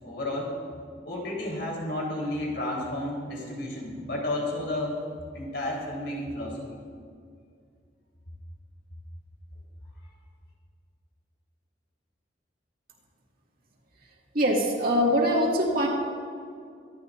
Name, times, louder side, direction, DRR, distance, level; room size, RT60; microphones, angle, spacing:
voice 1, 0.0-0.6 1.0-5.0 5.3-6.8, left 1 dB, 65° left, -3 dB, 4.1 m, -32 dB
voice 2, 14.3-15.9, equal, 50° right, -2 dB, 2.4 m, -23 dB
24.5 x 12.0 x 2.7 m, 2.2 s
head